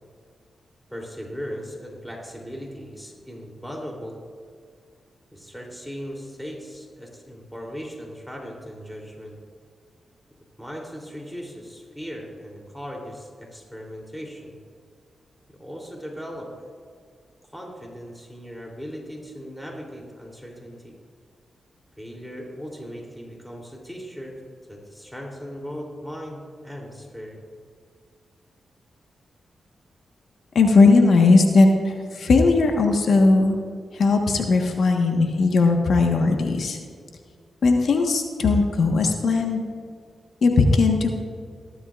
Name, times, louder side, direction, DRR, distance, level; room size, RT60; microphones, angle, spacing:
voice 1, 0.9-4.2 5.3-9.4 10.6-14.6 15.5-16.7 17.5-21.0 22.0-24.4 24.7-27.4, equal, ahead, -1 dB, 3.3 m, -38 dB
voice 2, 30.5-33.6 33.9-36.8 37.6-39.7 40.4-41.2, left 3 dB, 70° left, 3 dB, 1.4 m, -18 dB
18.0 x 12.0 x 2.5 m, 2.1 s
supercardioid pair, 50°, 0 cm